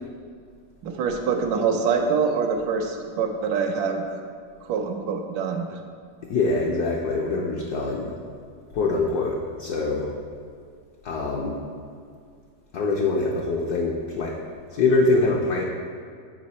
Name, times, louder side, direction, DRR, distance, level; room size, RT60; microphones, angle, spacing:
voice 1, 0.8-4.0 4.6-5.8, right 5 dB, 75° right, 4 dB, 1.3 m, -25 dB
voice 2, 6.3-8.1 8.7-10.1 11.0-11.6 12.7-14.4 14.7-15.6, left 3 dB, 65° left, -2 dB, 1.0 m, -24 dB
7.8 x 4.7 x 4.1 m, 2.3 s
omnidirectional pair, 2.2 m